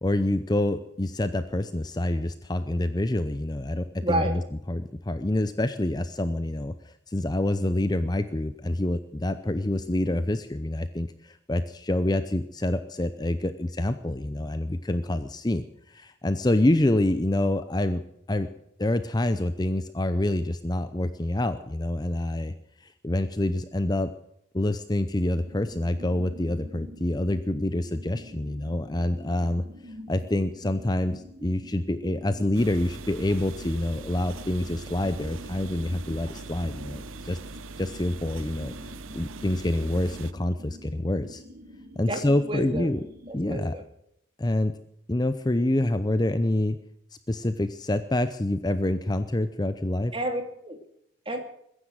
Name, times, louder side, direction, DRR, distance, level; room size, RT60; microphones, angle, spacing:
voice 1, 0.0-4.4 4.7-18.0 18.3-18.5 18.8-22.5 22.8-24.1 24.5-37.4 37.8-38.7 39.1-41.4 42.0-43.0 43.3-43.7 44.4-44.8 45.1-46.8 47.3-50.1, left 1 dB, 20° left, 11 dB, 0.6 m, -27 dB
voice 2, 4.0-4.4 42.1-42.9 43.3-43.8 50.1-50.8 51.3-51.4, right 1 dB, 25° right, 5 dB, 2.6 m, -30 dB
sound 1, 25.3-43.3, equal, 45° right, 1.9 m, -47 dB
sound 2, 32.5-40.3, right 3 dB, 85° right, 0.9 m, -42 dB
22.0 x 10.0 x 6.4 m, 0.75 s
head